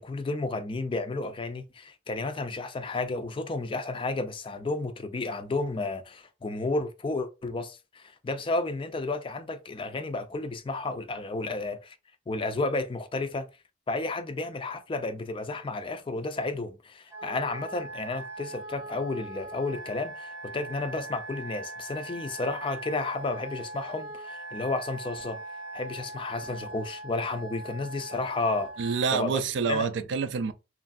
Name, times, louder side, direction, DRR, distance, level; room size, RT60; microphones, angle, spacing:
voice 1, 0.0-11.9 12.3-13.5 13.9-25.4 25.7-28.7 29.1-29.4 29.7-29.9, left 3 dB, 30° left, 0.4 m, -32 dB
Wind instrument woodwind instrument, 17.1-29.1, right 2 dB, 15° right, 0.8 m, -41 dB
voice 2, 28.8-30.5, right 5 dB, 75° right, 0.4 m, -27 dB
3.0 x 2.5 x 2.4 m
head